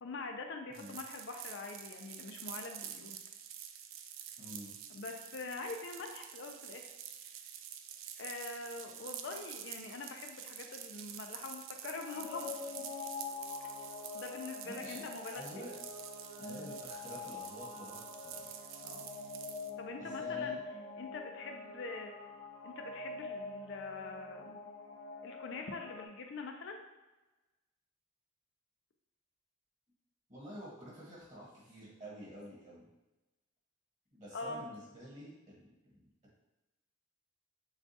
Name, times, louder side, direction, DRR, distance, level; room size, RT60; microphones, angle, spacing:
voice 1, 0.0-3.2 4.9-6.9 8.2-12.9 13.6-13.7 14.1-15.6 16.4-16.8 18.8-19.1 19.8-20.6 21.0-22.1 22.6-24.6 25.2-26.8 34.3-34.6, left 3 dB, 55° left, 4 dB, 0.4 m, -44 dB
sound 1, 0.7-19.7, right 9 dB, 65° right, 0.3 m, -48 dB
voice 2, 4.4-4.7 14.6-15.1 15.3-15.7 16.4-18.5 20.0-20.6 30.3-32.9 34.1-36.1, right 1 dB, 35° right, -6 dB, 1.2 m, -49 dB
sound 2, 11.9-26.1, left 4 dB, 70° left, 0.8 m, -45 dB
6.9 x 2.3 x 2.7 m, 1.1 s
head